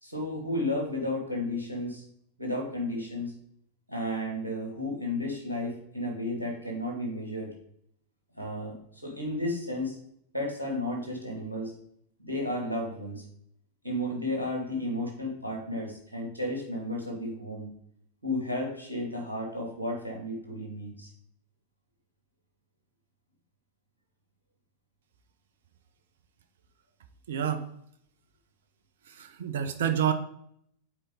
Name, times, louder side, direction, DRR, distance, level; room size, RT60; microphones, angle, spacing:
voice 1, 0.0-2.0 2.4-3.3 3.9-7.5 8.4-10.0 10.3-11.7 12.2-13.2 13.8-17.7 18.2-21.1, left 1 dB, 85° right, 0 dB, 2.4 m, -33 dB
voice 2, 27.3-27.7 29.1-30.1, right 9 dB, 60° right, 9 dB, 0.8 m, -28 dB
7.7 x 4.4 x 3.9 m, 0.69 s
figure-of-eight pair, 90°, 0 cm